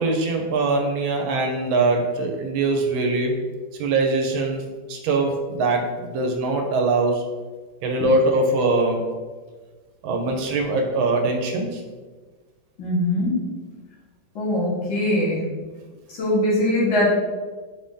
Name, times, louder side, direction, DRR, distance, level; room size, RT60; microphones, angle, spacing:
voice 1, 0.0-3.4 3.8-4.6 4.9-7.2 7.8-9.0 10.0-11.8, right 2 dB, 85° right, 3 dB, 1.5 m, -22 dB
voice 2, 12.8-13.3 14.4-15.5 16.1-17.1, left 1 dB, 70° left, -7 dB, 2.1 m, -21 dB
4.7 x 2.6 x 3.7 m, 1.4 s
omnidirectional pair, 2.1 m